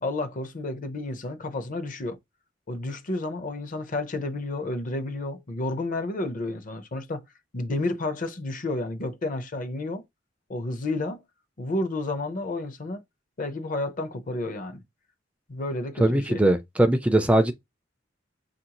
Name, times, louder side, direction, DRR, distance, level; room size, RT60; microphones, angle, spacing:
voice 1, 0.0-2.2 2.7-7.2 7.5-10.0 10.5-11.2 11.6-13.0 13.4-14.8 15.5-16.4, left 2 dB, 45° left, 0.7 m, -31 dB
voice 2, 16.0-17.5, right 1 dB, 5° right, 0.3 m, -20 dB
6.1 x 2.6 x 2.9 m
head